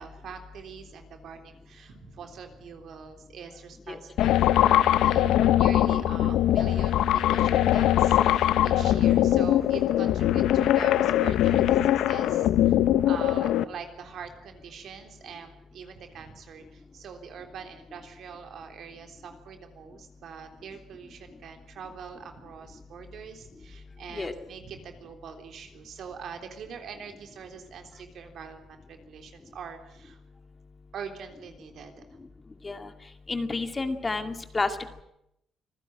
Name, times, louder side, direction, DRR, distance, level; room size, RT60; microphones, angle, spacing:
voice 1, 0.0-30.2 30.9-32.0, right 6 dB, 70° right, 6 dB, 3.6 m, -43 dB
sound 1, 4.2-13.6, left 12 dB, 85° left, 0.8 m, -22 dB
voice 2, 33.3-34.7, left 3 dB, 25° left, 7 dB, 2.3 m, -30 dB
25.5 x 15.5 x 9.0 m, 0.81 s
cardioid pair, 90°, 0 cm